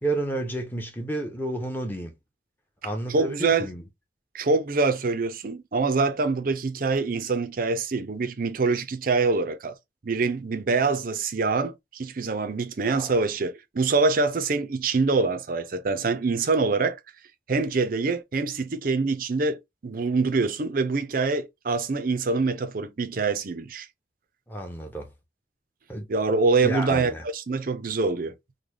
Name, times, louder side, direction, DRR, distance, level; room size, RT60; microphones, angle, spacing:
voice 1, 0.0-2.1 2.8-3.8 12.9-13.1 24.5-25.1 25.9-26.1 26.6-27.2, right 1 dB, 10° left, 0.8 m, -31 dB
voice 2, 2.8-3.7 4.3-9.7 10.0-17.0 17.5-23.9 26.1-28.3, right 4 dB, 55° right, 0.5 m, -25 dB
3.8 x 2.2 x 3.1 m
head